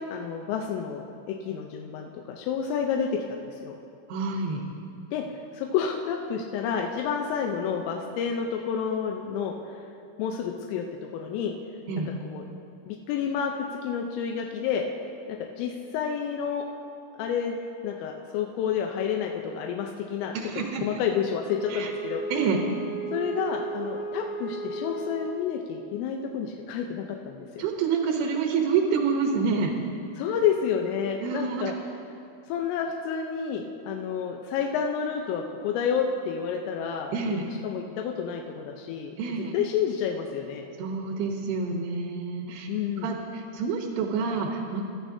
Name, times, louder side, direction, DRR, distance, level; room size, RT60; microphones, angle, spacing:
voice 1, 0.0-3.8 5.1-5.2 5.5-9.5 10.2-10.9 11.1-11.5 12.0-12.4 12.9-14.8 15.3-16.6 17.2-17.6 17.8-22.2 23.1-27.7 30.2-31.7 32.5-40.6 42.7-43.1, left 7 dB, 90° left, 1 dB, 3.4 m, -30 dB
voice 2, 4.1-4.6 11.9-12.1 20.3-20.8 21.7-21.9 22.3-22.6 27.6-29.7 31.2-31.7 37.1-37.4 39.2-39.5 40.8-42.7 43.0-44.8, right 5 dB, 75° right, 1 dB, 2.5 m, -27 dB
Wind instrument woodwind instrument, 21.5-25.7, right 3 dB, 65° left, 1.7 m, -35 dB
23.5 x 12.5 x 2.8 m, 2.6 s
omnidirectional pair, 5.7 m